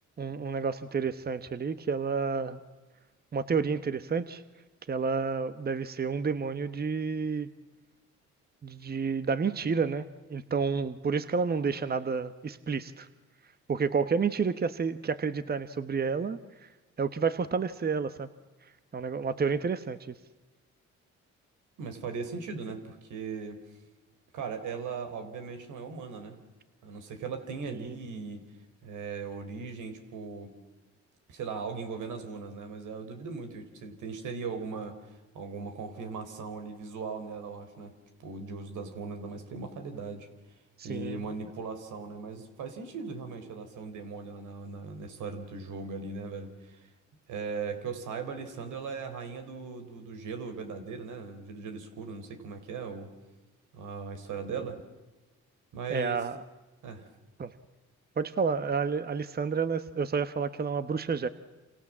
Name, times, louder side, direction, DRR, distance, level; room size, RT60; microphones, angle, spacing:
voice 1, 0.2-2.6 3.3-4.4 4.9-7.5 8.6-13.1 13.7-16.7 17.0-18.3 18.9-20.1 27.7-27.9 40.8-41.2 54.5-54.6 55.9-56.4 57.4-57.5 58.2-61.3, right 5 dB, 30° right, 12 dB, 1.2 m, -30 dB
voice 2, 21.8-23.6 24.3-26.4 26.8-28.4 28.8-30.5 31.3-35.0 35.3-37.9 38.2-40.3 40.8-46.8 47.3-53.1 53.7-54.8 55.7-56.2 56.8-57.1, right 5 dB, 80° right, 7 dB, 4.0 m, -38 dB
28.5 x 27.5 x 7.4 m, 1.2 s
cardioid pair, 90°, 30 cm